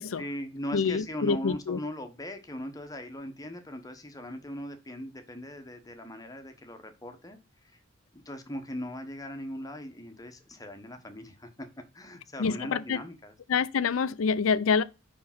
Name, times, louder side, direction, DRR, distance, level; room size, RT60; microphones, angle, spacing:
voice 1, 0.1-7.8 8.1-11.7 11.9-13.3, equal, 20° left, 1.0 m, -39 dB
voice 2, 0.7-1.8 12.4-13.0 13.5-14.8, left 5 dB, 85° left, 0.5 m, -26 dB
5.3 x 4.8 x 5.7 m
head